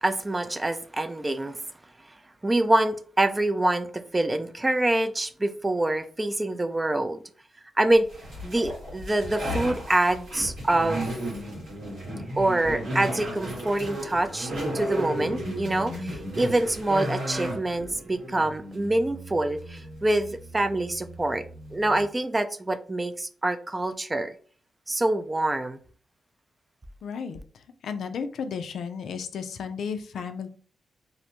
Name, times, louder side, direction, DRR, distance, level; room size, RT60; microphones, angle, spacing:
voice 1, 0.0-1.6 2.4-7.2 7.8-8.1 8.4-11.1 12.4-21.4 21.7-24.3 24.9-25.8, right 1 dB, 25° right, 0.3 m, -25 dB
sound 1, 8.1-22.0, right 1 dB, 80° right, 1.5 m, -34 dB
voice 2, 27.0-27.4 27.8-30.5, left 6 dB, 75° left, 0.3 m, -33 dB
2.5 x 2.1 x 2.9 m
cardioid pair, 60°, 0 cm